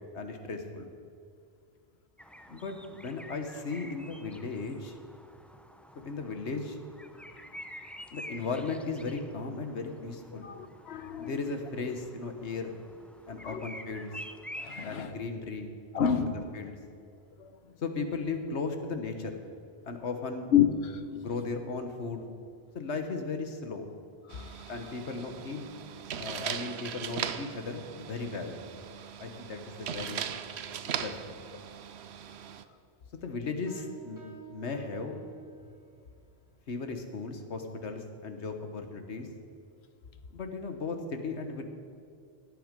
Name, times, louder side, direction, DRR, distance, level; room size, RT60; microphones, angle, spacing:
voice 1, 0.1-0.9 2.5-5.0 6.0-6.8 8.1-10.5 11.2-12.8 13.3-14.1 14.8-15.7 16.0-16.3 16.5-16.8 17.8-19.4 19.9-20.5 21.1-22.3 22.7-23.9 24.7-25.7 26.1-28.6 29.2-30.3 30.8-31.4 33.1-34.2 34.5-35.2 36.7-39.3 40.3-41.6, left 4 dB, 85° left, 6 dB, 1.6 m, -36 dB
sound 1, 2.2-15.3, equal, ahead, 0.4 m, -48 dB
voice 2, 10.4-11.3 13.4-13.6 14.6-15.2 15.9-16.3 17.4-17.5 20.5-21.0 24.3-24.6, left 9 dB, 70° left, 10 dB, 1.1 m, -29 dB
sound 2, 24.3-32.6, right 8 dB, 75° right, 0.9 m, -39 dB
sound 3, 33.7-36.1, right 7 dB, 15° right, 1.7 m, -49 dB
16.5 x 9.4 x 5.2 m, 2.4 s
omnidirectional pair, 1.1 m